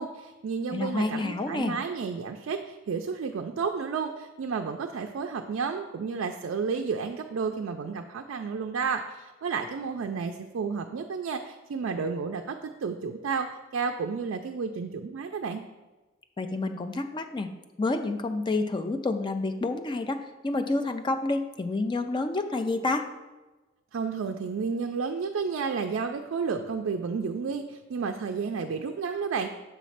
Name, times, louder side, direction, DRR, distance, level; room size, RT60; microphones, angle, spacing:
voice 1, 0.0-13.5 13.7-15.6 23.9-29.5, right 5 dB, 70° right, 4 dB, 0.4 m, -31 dB
voice 2, 0.7-1.7 16.4-17.5 17.8-23.1, left 2 dB, 25° left, 7 dB, 0.4 m, -29 dB
7.0 x 3.1 x 5.7 m, 1.1 s
head